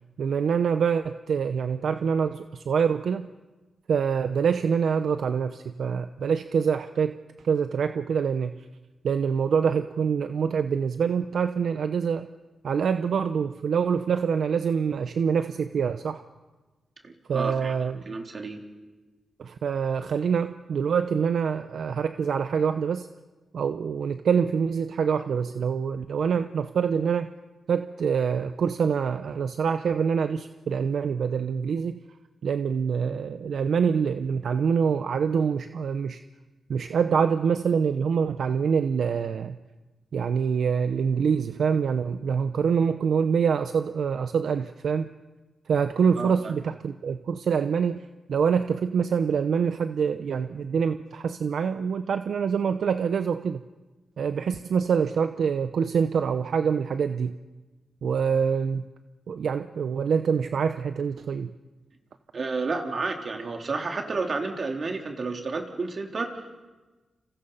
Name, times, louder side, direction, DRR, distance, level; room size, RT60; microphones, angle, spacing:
voice 1, 0.2-3.3 3.9-7.2 7.4-8.5 9.0-12.3 12.6-16.2 17.3-18.0 19.4-23.1 23.5-27.3 27.7-32.0 32.4-36.2 36.7-39.6 40.1-45.1 45.7-53.6 54.2-57.3 58.0-58.8 59.3-61.5, right 6 dB, 80° right, 9 dB, 0.8 m, -25 dB
voice 2, 17.0-17.7 18.1-18.6 46.2-46.5 62.3-66.4, right 3 dB, 50° right, 2 dB, 3.7 m, -31 dB
30.0 x 28.0 x 5.7 m, 1.2 s
cardioid pair, 80°, 0 cm